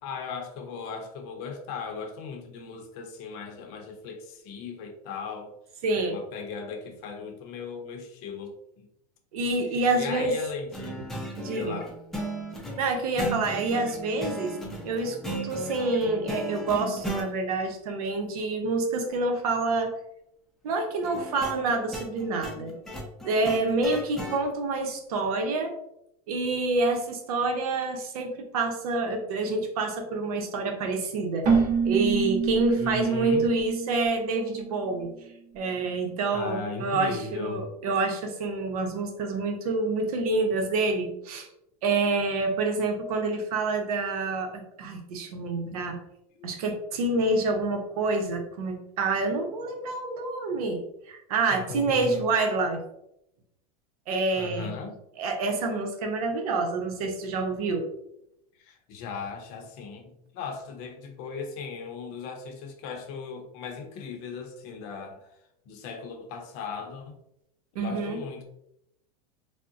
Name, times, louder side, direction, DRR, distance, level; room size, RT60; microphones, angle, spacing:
voice 1, 0.0-5.5 6.1-8.9 9.9-11.0 11.4-11.9 13.7-13.8 32.8-33.5 36.3-37.7 46.4-46.5 51.5-52.2 54.3-55.0 58.6-65.2 65.7-67.2 67.7-68.4, left 5 dB, 50° left, 4 dB, 0.6 m, -37 dB
voice 2, 5.8-6.2 9.3-10.3 11.4-11.8 12.8-14.6 14.9-19.9 20.6-22.7 23.2-25.7 26.3-31.5 31.8-35.1 35.5-41.5 41.8-46.0 46.4-52.8 54.1-54.7 55.2-57.9 67.7-68.2, right 3 dB, 75° right, 4 dB, 0.7 m, -27 dB
sound 1, 10.7-17.3 21.0-24.4, right 1 dB, ahead, 0.5 m, -36 dB
Keyboard (musical), 31.4-35.1, right 5 dB, 40° right, 0.8 m, -27 dB
3.6 x 2.1 x 2.5 m, 0.79 s
supercardioid pair, 130°, 19 cm